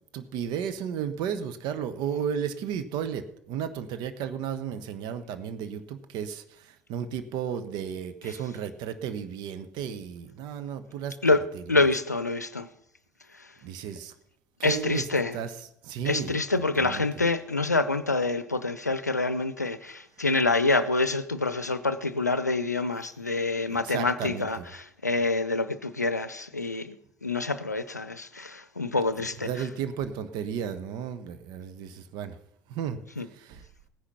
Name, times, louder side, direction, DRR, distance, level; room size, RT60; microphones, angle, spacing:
voice 1, 0.1-11.9 13.6-14.1 14.6-15.1 15.3-16.4 16.8-17.2 23.7-24.7 29.4-32.4 32.7-33.6, right 8 dB, 55° right, 1.2 m, -34 dB
voice 2, 11.7-12.7 14.6-15.3 16.1-26.9 27.2-29.5 33.2-33.3, left 3 dB, 90° left, 0.6 m, -26 dB
16.5 x 10.0 x 5.7 m
figure-of-eight pair, 60°, 9 cm